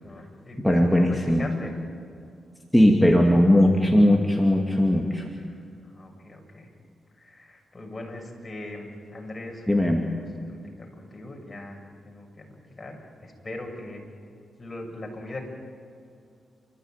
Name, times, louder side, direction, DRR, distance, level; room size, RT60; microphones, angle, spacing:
voice 1, 0.0-0.6 1.0-1.7 5.5-6.7 7.1-14.1 14.6-15.5, left 2 dB, 30° left, 1 dB, 6.8 m, -40 dB
voice 2, 0.6-1.5 2.7-5.3 9.7-10.0, left 1 dB, 5° left, 0 dB, 2.7 m, -19 dB
29.5 x 14.5 x 9.1 m, 2.4 s
supercardioid pair, 55°, 0 cm